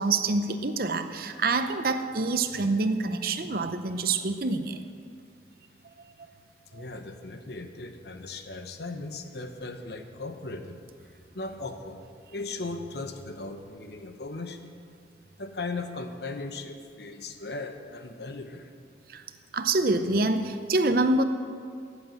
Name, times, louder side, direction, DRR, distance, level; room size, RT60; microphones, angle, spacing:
voice 1, 0.0-4.8 6.7-6.8 19.1-19.2 19.5-21.2, right 3 dB, 55° right, 9 dB, 0.7 m, -26 dB
voice 2, 6.7-12.1 12.3-14.7 15.4-18.7, left 3 dB, 65° left, 7 dB, 1.0 m, -38 dB
12.5 x 8.5 x 7.7 m, 2.2 s
head